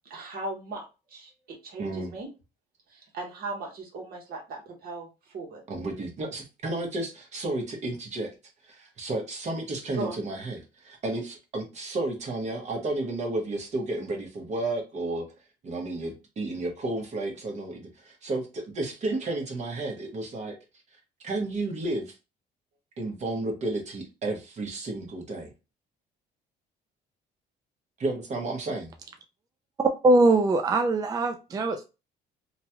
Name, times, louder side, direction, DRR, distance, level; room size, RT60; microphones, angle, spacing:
voice 1, 0.1-2.3 2.9-5.1 5.3-5.6 9.9-10.2, right 2 dB, 60° right, 1 dB, 1.2 m, -38 dB
voice 2, 1.8-2.1 5.7-8.3 8.6-15.3 15.6-20.6 21.2-22.1 23.0-25.5 28.0-28.9, right 2 dB, 40° right, 2 dB, 1.1 m, -32 dB
voice 3, 29.8-31.9, right 2 dB, 20° right, 6 dB, 0.3 m, -22 dB
2.9 x 2.3 x 2.8 m, 0.28 s
cardioid pair, 110°, 17 cm